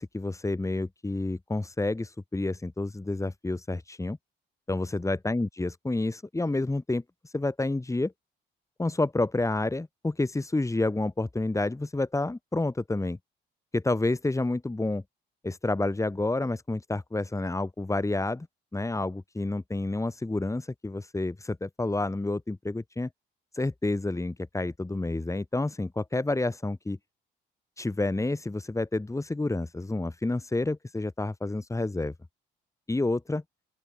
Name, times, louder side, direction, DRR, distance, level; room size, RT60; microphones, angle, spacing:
voice 1, 0.0-4.2 4.7-8.1 8.8-13.2 13.7-15.0 15.4-18.5 18.7-23.1 23.5-27.0 27.8-32.1 32.9-33.4, left 2 dB, 15° left, 5.1 m, -29 dB
open air
cardioid pair, 90°, 20 cm